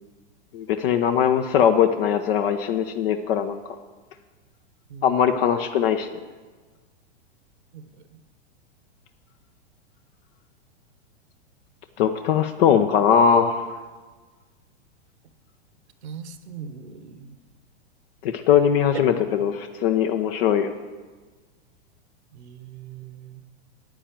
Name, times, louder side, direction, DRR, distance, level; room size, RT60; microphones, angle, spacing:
voice 1, 0.5-3.6 5.0-6.1 12.0-13.7 18.2-20.7, left 8 dB, 55° left, 7 dB, 0.9 m, -20 dB
voice 2, 7.7-8.2 16.0-17.4 18.9-19.0 22.3-23.4, right 7 dB, 70° right, 10 dB, 1.3 m, -40 dB
9.8 x 9.2 x 7.5 m, 1.4 s
hypercardioid pair, 105°, 34 cm